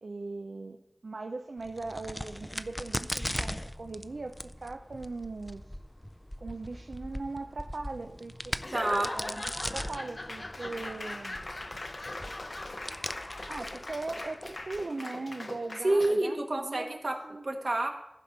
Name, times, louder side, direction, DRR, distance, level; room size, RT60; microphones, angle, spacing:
voice 1, 0.0-5.8 6.4-8.6 9.1-11.5 13.5-17.0 17.2-17.4, right 3 dB, 90° right, 5 dB, 0.5 m, -39 dB
Crack, 1.6-14.8, equal, 10° left, 0.4 m, -40 dB
Laughter / Applause / Crowd, 8.6-16.3, left 2 dB, 55° left, 0.7 m, -40 dB
voice 2, 8.7-9.1 15.8-17.2 17.4-17.9, right 2 dB, 65° right, 3 dB, 1.3 m, -28 dB
15.0 x 5.1 x 4.0 m, 0.85 s
wide cardioid pair, 45°, 0 cm